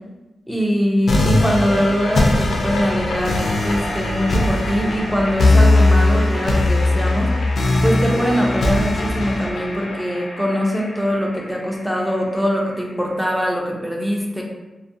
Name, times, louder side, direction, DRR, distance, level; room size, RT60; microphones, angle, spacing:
voice 1, 0.5-7.5 7.8-14.4, equal, ahead, -1 dB, 0.4 m, -22 dB
sound 1, 1.1-12.1, left 2 dB, 65° left, 0.4 m, -19 dB
2.4 x 2.1 x 2.6 m, 1.1 s
wide cardioid pair, 135°, 0 cm